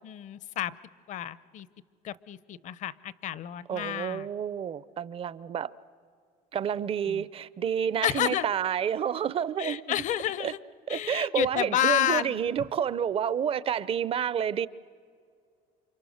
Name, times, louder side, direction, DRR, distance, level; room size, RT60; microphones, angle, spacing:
voice 1, 0.0-0.8 1.1-1.7 2.0-4.3 7.1-7.2 8.0-8.4 9.6-10.6 10.9-12.5, left 12 dB, 50° left, 0.7 m, -30 dB
voice 2, 3.7-5.7 6.5-9.8 10.4-10.5 10.9-14.7, right 8 dB, 35° right, 0.6 m, -29 dB
28.5 x 25.5 x 6.4 m
cardioid pair, 135°, 16 cm